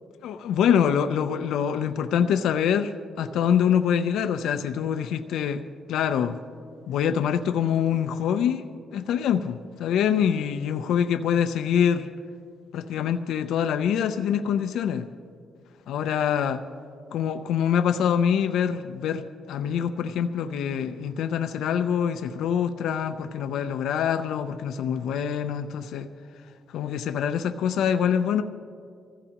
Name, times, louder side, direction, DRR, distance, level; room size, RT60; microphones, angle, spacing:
voice 1, 0.2-2.9 3.2-5.6 5.9-6.4 6.9-8.6 8.9-12.1 12.7-15.1 15.9-16.6 17.1-26.1 26.7-28.4, left 8 dB, 80° left, 8 dB, 0.5 m, -25 dB
24.0 x 15.0 x 2.9 m, 2.3 s
cardioid pair, 90°, 0 cm